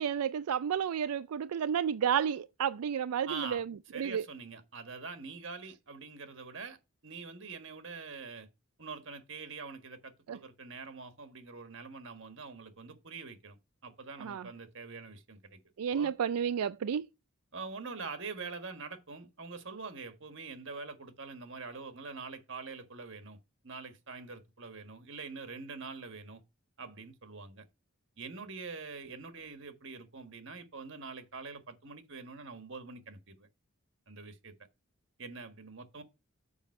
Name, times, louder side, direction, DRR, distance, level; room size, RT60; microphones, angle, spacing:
voice 1, 0.0-4.3 10.3-10.4 14.2-14.5 15.8-17.1, right 8 dB, 90° right, 0.4 m, -31 dB
voice 2, 3.2-3.6 3.9-6.8 7.0-8.5 8.8-13.6 13.8-15.6 15.9-16.1 17.5-23.4 23.6-26.4 26.8-27.7 28.2-33.5 34.1-34.5 35.2-36.0, right 4 dB, 55° right, 1.5 m, -44 dB
7.2 x 5.2 x 5.4 m
head